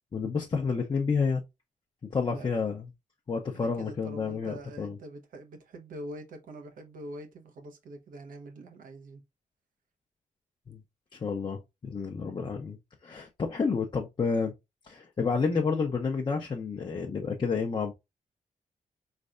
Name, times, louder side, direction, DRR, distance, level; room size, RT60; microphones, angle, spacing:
voice 1, 0.1-1.4 2.1-2.9 3.3-5.0 10.7-10.8 11.1-12.8 13.0-14.5 14.9-17.9, left 5 dB, 35° left, 0.7 m, -30 dB
voice 2, 2.3-2.6 3.5-9.2, right 1 dB, 85° right, 1.1 m, -44 dB
4.5 x 3.3 x 2.5 m
wide cardioid pair, 110°, 14 cm